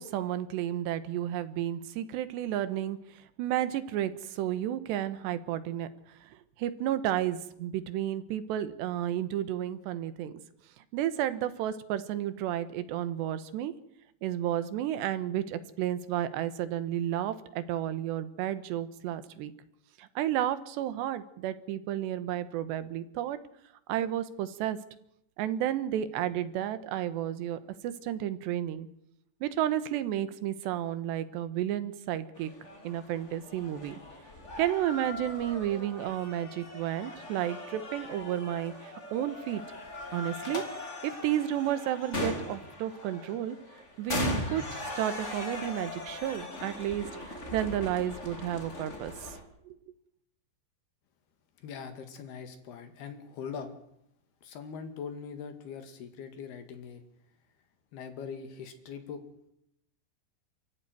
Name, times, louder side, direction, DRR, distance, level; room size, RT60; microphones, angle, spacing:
voice 1, 0.0-5.9 6.2-6.3 6.6-10.4 10.9-13.7 14.2-19.5 20.0-23.4 23.9-24.8 25.4-28.9 29.4-32.5 32.8-34.0 34.6-39.6 40.1-40.6 41.0-43.6 44.0-49.1 49.7-49.8, right 11 dB, 80° right, 13 dB, 3.4 m, -32 dB
sound 1, 32.3-49.4, left 2 dB, 20° left, 2.6 m, -39 dB
voice 2, 51.6-53.8 54.4-57.0 57.9-59.2, left 6 dB, 70° left, 8 dB, 4.1 m, -42 dB
28.5 x 15.0 x 9.4 m, 0.79 s
omnidirectional pair, 4.9 m